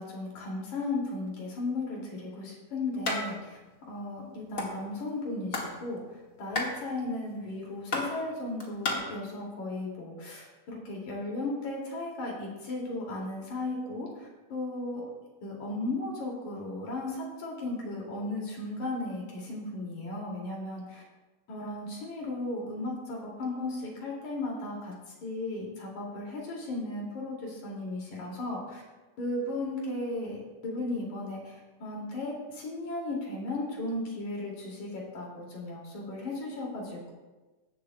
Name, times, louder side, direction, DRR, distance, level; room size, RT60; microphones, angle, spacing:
voice 1, 0.0-6.0 6.4-15.1 15.4-21.0 21.5-24.9 25.2-28.8 29.2-37.1, left 2 dB, 85° left, -2 dB, 3.9 m, -35 dB
sound 1, 3.0-3.2 3.5-3.6 3.9-4.7 5.2-5.7 6.0-8.9, left 2 dB, 35° left, 1.6 m, -32 dB
15.5 x 11.5 x 2.3 m, 1.2 s
omnidirectional pair, 3.3 m